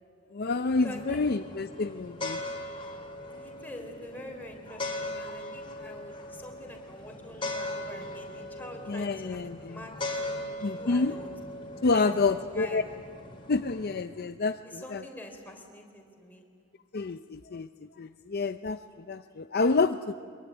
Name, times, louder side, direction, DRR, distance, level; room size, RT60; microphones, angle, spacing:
voice 1, 0.3-2.4 8.9-9.8 10.6-11.2 11.8-12.8 13.5-15.0 16.9-20.1, left 3 dB, 50° left, 9 dB, 0.5 m, -28 dB
sound 1, 0.8-14.0, left 1 dB, 25° left, 3.1 m, -39 dB
voice 2, 0.8-1.2 3.2-9.9 10.2-10.5 10.8-11.3 11.9-12.1 12.4-12.8 14.6-16.4, left 1 dB, 10° left, 2 dB, 3.5 m, -45 dB
23.5 x 22.5 x 9.4 m, 2.2 s
head